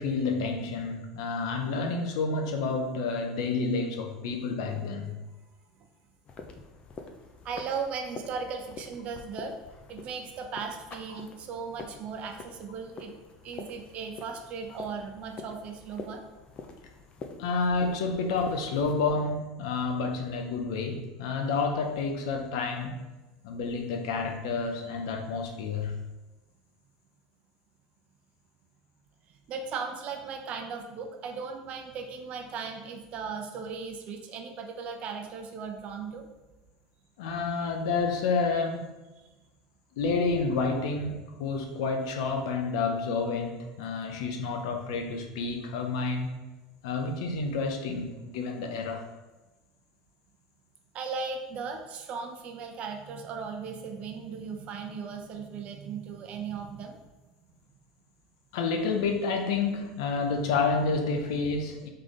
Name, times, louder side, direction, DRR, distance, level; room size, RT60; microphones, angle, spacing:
voice 1, 0.0-5.2 11.1-11.2 17.4-23.0 23.4-26.0 37.2-38.9 40.0-46.4 46.8-49.1 58.5-61.9, left 4 dB, 75° left, 4 dB, 0.7 m, -29 dB
sound 1, 6.2-19.1, left 4 dB, 35° left, 0.5 m, -46 dB
voice 2, 7.4-9.5 9.9-13.1 13.4-16.2 29.5-36.3 50.9-57.0, right 5 dB, 45° right, 3 dB, 0.7 m, -37 dB
3.7 x 3.3 x 3.8 m, 1.1 s
supercardioid pair, 110°, 3 cm